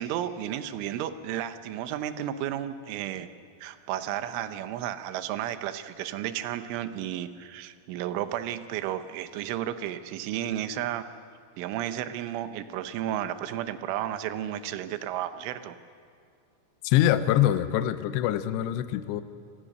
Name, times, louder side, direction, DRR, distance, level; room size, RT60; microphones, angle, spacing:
voice 1, 0.0-3.3 3.6-11.1 11.6-15.8, right 11 dB, 80° right, 11 dB, 3.2 m, -33 dB
voice 2, 16.8-19.2, left 12 dB, 85° left, 12 dB, 2.5 m, -24 dB
28.5 x 19.0 x 6.5 m, 2.2 s
omnidirectional pair, 5.9 m